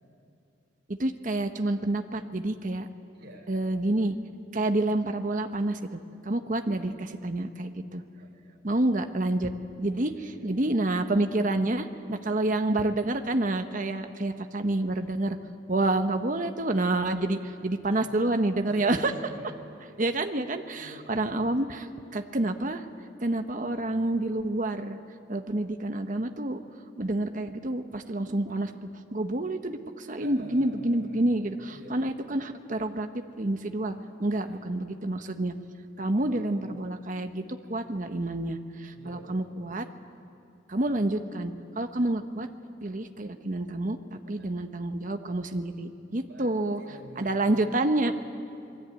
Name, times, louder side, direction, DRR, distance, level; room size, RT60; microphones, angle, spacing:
voice 1, 0.9-2.9 3.5-4.2 4.5-8.0 8.6-9.5 9.8-15.4 15.7-19.1 20.0-22.9 23.2-25.0 25.3-26.6 27.0-35.5 36.0-39.9 40.7-42.5 42.8-46.8 47.2-48.1, right 2 dB, 40° right, 7 dB, 1.0 m, -28 dB
voice 2, 3.1-3.7 8.2-8.9 10.0-10.9 12.1-12.5 17.8-18.1 18.6-20.2 20.8-21.5 30.2-32.1 34.3-34.6 36.1-36.8 38.9-39.6 41.0-41.1 44.1-44.5 46.2-47.7, right 1 dB, 65° right, 0 dB, 5.3 m, -49 dB
27.5 x 21.0 x 9.0 m, 2.6 s
head